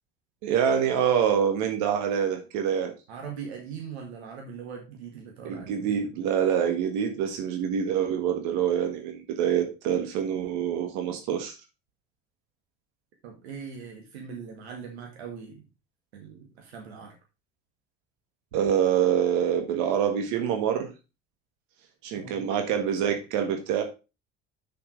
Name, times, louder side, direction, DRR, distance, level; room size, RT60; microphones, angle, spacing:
voice 1, 0.4-2.9 5.4-11.5 18.5-20.9 22.0-23.8, right 8 dB, 70° right, 5 dB, 1.6 m, -26 dB
voice 2, 3.1-5.9 13.2-15.6 16.1-17.1 22.1-22.5, right 6 dB, 85° right, 1 dB, 1.9 m, -41 dB
6.5 x 5.8 x 5.0 m, 0.29 s
hypercardioid pair, 65°, 31 cm